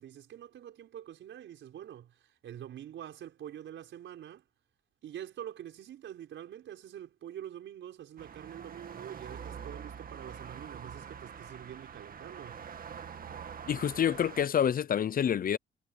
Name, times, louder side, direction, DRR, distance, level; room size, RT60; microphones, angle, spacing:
voice 1, 0.0-4.4 5.0-12.7, right 10 dB, 70° right, 5.4 m, -46 dB
sound 1, 8.2-14.5, right 7 dB, 45° right, 2.0 m, -45 dB
voice 2, 13.7-15.6, left 9 dB, 45° left, 0.7 m, -27 dB
cardioid pair, 90°, 20 cm